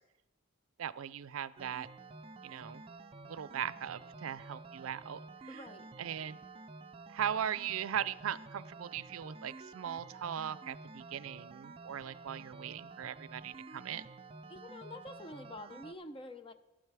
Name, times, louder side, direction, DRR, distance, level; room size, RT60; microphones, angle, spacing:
voice 1, 0.8-1.9 2.4-2.8 3.3-5.2 5.5-5.6 6.0-6.4 7.1-14.1, right 9 dB, 90° right, 18 dB, 0.4 m, -39 dB
sound 1, 1.6-15.9, right 3 dB, 25° right, 0.5 m, -51 dB
voice 2, 5.5-5.9 14.5-16.5, left 1 dB, 25° left, 9 dB, 0.6 m, -47 dB
12.5 x 9.8 x 4.8 m, 1.0 s
head